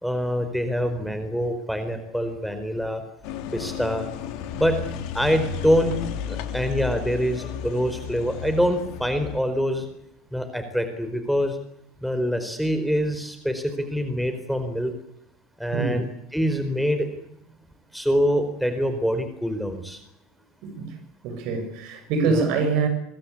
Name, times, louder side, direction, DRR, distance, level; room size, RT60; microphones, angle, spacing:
voice 1, 0.0-3.0 3.5-4.1 4.5-4.7 5.1-5.9 6.3-9.9 10.3-11.6 12.0-14.9 15.6-16.0 16.3-17.1 17.9-20.0 22.3-22.5, equal, ahead, 4.6 m, -25 dB
sound 1, 3.2-9.4, left 8 dB, 55° left, 3.3 m, -33 dB
voice 2, 20.6-21.0 21.2-22.9, right 4 dB, 55° right, 7.7 m, -25 dB
26.0 x 22.5 x 8.6 m
figure-of-eight pair, 70°, 0 cm